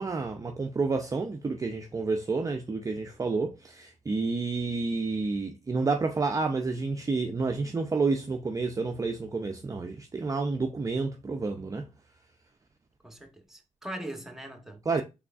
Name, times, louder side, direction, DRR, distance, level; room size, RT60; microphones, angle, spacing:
voice 1, 0.0-11.9 14.9-15.0, right 3 dB, 25° right, 0.5 m, -29 dB
voice 2, 13.0-15.0, right 1 dB, 5° right, 1.0 m, -41 dB
3.6 x 3.4 x 2.3 m
supercardioid pair, 60°, 14 cm